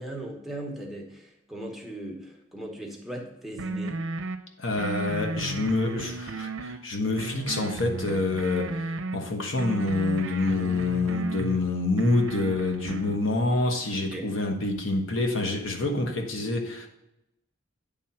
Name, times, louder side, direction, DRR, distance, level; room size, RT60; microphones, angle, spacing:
voice 1, 0.0-4.0 13.9-14.3, right 1 dB, ahead, -1 dB, 1.1 m, -38 dB
sound 1, 3.6-4.4 4.8-6.8 7.2-9.2 9.6-11.6 12.0-13.2, right 3 dB, 85° right, 0.6 m, -34 dB
voice 2, 4.6-16.9, left 2 dB, 75° left, 2 dB, 1.2 m, -27 dB
8.9 x 3.6 x 5.6 m, 0.88 s
head